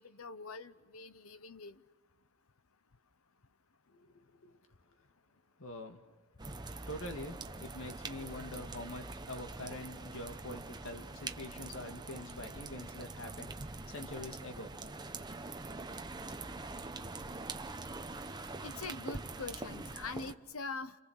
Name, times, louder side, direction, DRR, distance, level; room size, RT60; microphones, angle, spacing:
voice 1, 0.0-1.8 18.6-21.0, left 3 dB, 90° left, 13 dB, 1.0 m, -43 dB
voice 2, 5.6-6.0 6.9-14.9, left 1 dB, 65° left, 5 dB, 2.2 m, -45 dB
sound 1, 6.4-20.3, right 3 dB, 20° right, 0.9 m, -44 dB
29.5 x 29.5 x 6.5 m, 1.2 s
head